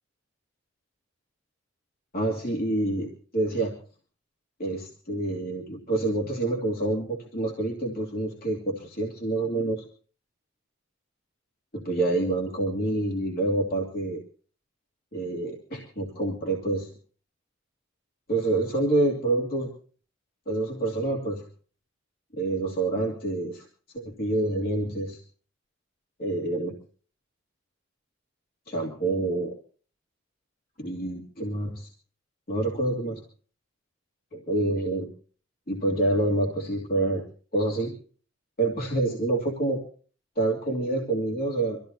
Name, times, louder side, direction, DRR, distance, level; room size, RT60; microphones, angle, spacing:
voice 1, 2.1-3.7 4.6-9.8 11.7-14.2 15.1-16.9 18.3-19.7 20.5-21.4 22.3-23.6 23.9-25.2 26.2-26.7 28.7-29.5 30.8-31.9 32.5-33.2 34.3-35.1 35.7-37.2 37.5-37.9 38.6-39.8 40.4-41.8, right 2 dB, 50° left, 0 dB, 2.7 m, -27 dB
25.0 x 15.0 x 2.8 m, 0.42 s
head